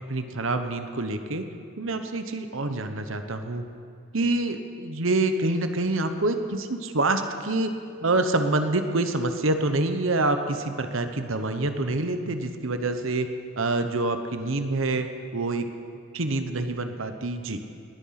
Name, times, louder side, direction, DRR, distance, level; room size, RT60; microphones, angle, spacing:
voice 1, 0.1-1.4 1.8-3.6 4.1-7.7 8.0-13.3 13.6-15.1 15.3-15.7 16.1-17.6, right 2 dB, 65° right, 8 dB, 1.1 m, -26 dB
20.0 x 10.5 x 5.9 m, 2.5 s
head